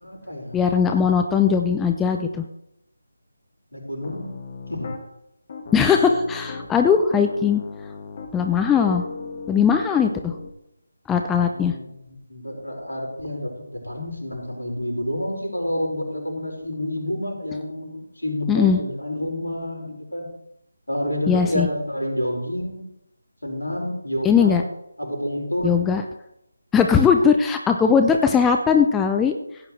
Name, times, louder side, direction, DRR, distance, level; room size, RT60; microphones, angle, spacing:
voice 1, 0.0-0.6 0.9-1.2 3.7-4.3 4.7-4.9 11.3-20.3 20.9-22.9 23.4-24.6 25.0-25.8, left 1 dB, 75° left, -1 dB, 4.9 m, -29 dB
voice 2, 0.5-2.4 5.7-7.6 8.3-9.0 9.5-10.4 11.1-11.8 18.5-18.8 21.3-21.7 24.2-24.6 25.6-26.0 26.7-29.4, left 6 dB, 5° left, 4 dB, 0.5 m, -19 dB
Piano, 4.0-5.0 5.5-6.7 7.1-10.5, left 4 dB, 35° left, 1.6 m, -37 dB
16.0 x 9.5 x 3.2 m, 0.82 s
figure-of-eight pair, 155°, 0 cm